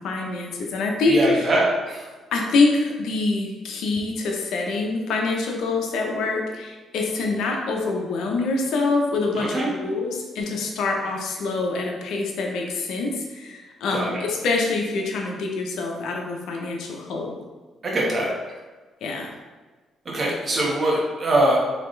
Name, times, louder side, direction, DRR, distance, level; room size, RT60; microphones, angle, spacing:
voice 1, 0.0-1.5 2.3-17.4 19.0-19.3, left 3 dB, 80° left, 0 dB, 0.8 m, -25 dB
voice 2, 1.1-2.0 9.3-9.7 13.9-14.1 17.8-18.3 20.1-21.6, right 1 dB, 40° right, -3 dB, 1.3 m, -22 dB
4.1 x 3.4 x 3.2 m, 1.3 s
cardioid pair, 90°, 0 cm